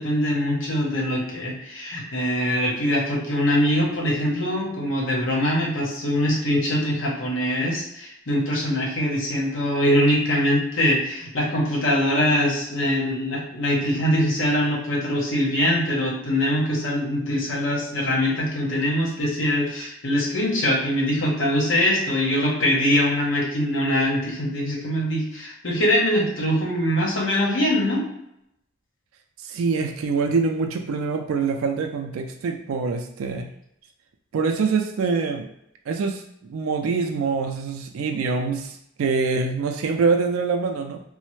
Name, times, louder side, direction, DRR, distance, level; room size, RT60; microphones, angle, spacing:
voice 1, 0.0-28.0, equal, 70° left, -3 dB, 0.9 m, -23 dB
voice 2, 29.4-33.5 34.3-35.5 35.9-41.0, right 4 dB, 85° right, 4 dB, 0.3 m, -25 dB
3.1 x 2.1 x 3.1 m, 0.78 s
head